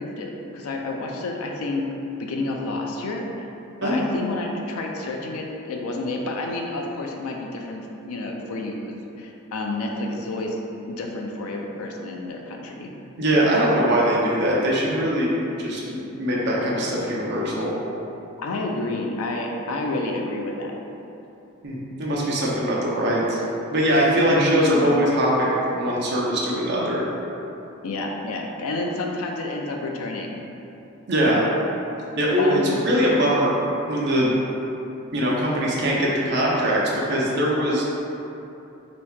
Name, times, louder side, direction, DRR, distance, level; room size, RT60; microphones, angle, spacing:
voice 1, 0.0-1.8 2.2-3.5 3.8-10.6 10.9-12.9 18.4-20.7 24.3-24.9 27.8-30.4 32.4-32.8, left 2 dB, 90° left, 1 dB, 0.4 m, -29 dB
voice 2, 13.2-15.3 15.6-17.7 21.6-23.4 23.7-27.1 31.1-31.4 32.2-33.6 33.9-34.3 35.1-37.8, equal, 50° right, -5 dB, 0.6 m, -22 dB
2.9 x 2.7 x 3.4 m, 2.9 s
head